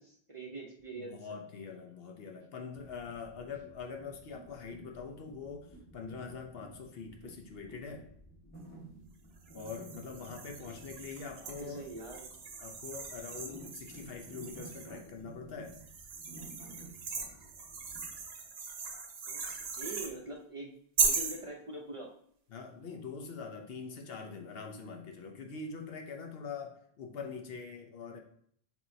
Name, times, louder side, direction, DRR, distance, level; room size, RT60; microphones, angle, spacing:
voice 1, 0.0-1.2 11.4-12.3 19.3-19.4 19.8-20.7 21.0-22.1, right 2 dB, 35° right, -1 dB, 0.6 m, -43 dB
voice 2, 1.0-8.1 9.5-12.0 12.6-15.8 22.5-28.2, left 5 dB, 65° left, 3 dB, 0.9 m, -44 dB
sound 1, 2.7-18.2, right 2 dB, 10° left, 1.4 m, -53 dB
sound 2, 9.5-15.0 15.7-20.1 21.0-21.4, right 5 dB, 75° right, 1.0 m, -38 dB
7.1 x 2.7 x 2.7 m, 0.63 s
omnidirectional pair, 1.1 m